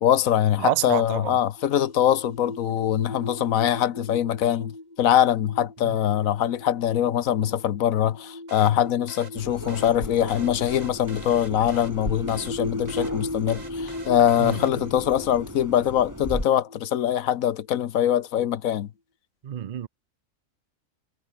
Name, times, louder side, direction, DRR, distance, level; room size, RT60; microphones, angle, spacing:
voice 1, 0.0-18.9, left 10 dB, 80° left, 1.2 m, -23 dB
voice 2, 0.6-1.4 5.8-6.0 14.4-14.6 19.4-19.9, right 12 dB, 60° right, 0.4 m, -28 dB
sound 1, 1.6-17.9, left 2 dB, 30° left, 3.8 m, -38 dB
sound 2, 8.5-15.1, right 2 dB, 30° right, 3.2 m, -46 dB
sound 3, 9.4-16.4, equal, 10° right, 6.4 m, -37 dB
omnidirectional pair, 1.4 m